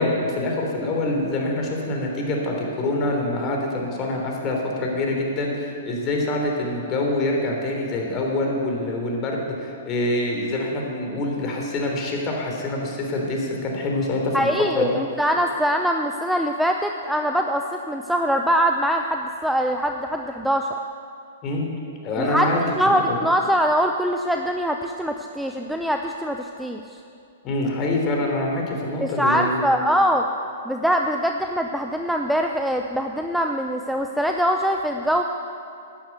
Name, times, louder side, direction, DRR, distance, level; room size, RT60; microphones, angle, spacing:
voice 1, 0.0-14.5 14.7-15.0 21.4-21.7 22.0-23.2 27.4-29.6, left 2 dB, 30° left, 0 dB, 3.4 m, -25 dB
voice 2, 14.3-20.7 22.2-22.5 22.8-26.8 29.0-30.3 30.7-35.2, equal, ahead, 3 dB, 0.6 m, -23 dB
12.0 x 10.0 x 8.1 m, 2.5 s
hypercardioid pair, 120°, 0 cm